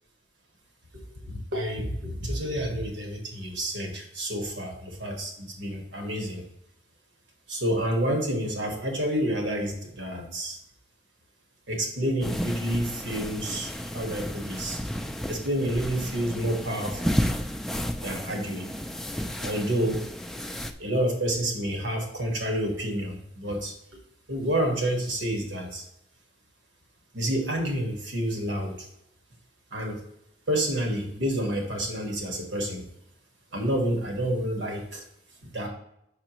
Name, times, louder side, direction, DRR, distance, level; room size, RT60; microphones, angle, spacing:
voice 1, 1.2-6.4 7.5-10.6 11.7-14.8 15.3-17.1 18.0-18.7 19.4-20.0 20.8-23.7 24.3-25.8 27.1-28.9 29.7-30.0 30.5-32.8 33.5-35.0 35.5-35.7, right 1 dB, 80° right, 2 dB, 1.6 m, -29 dB
sound 1, 12.2-20.7, equal, ahead, 0.3 m, -32 dB
6.6 x 5.9 x 3.0 m, 0.77 s
head